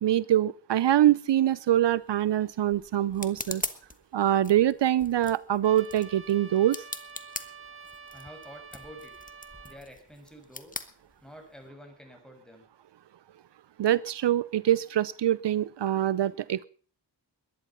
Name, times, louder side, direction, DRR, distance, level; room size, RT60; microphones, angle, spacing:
voice 1, 0.0-3.6 4.1-6.8 13.8-16.7, right 12 dB, 80° right, 19 dB, 0.6 m, -24 dB
sound 1, 1.8-11.7, left 2 dB, 20° left, 1.4 m, -42 dB
Trumpet, 5.6-9.8, right 5 dB, 30° right, 1.3 m, -47 dB
voice 2, 8.1-9.1 9.6-10.8 11.2-12.7, equal, ahead, 4 dB, 6.3 m, -48 dB
21.0 x 10.5 x 5.6 m, 0.43 s
wide cardioid pair, 75°, 42 cm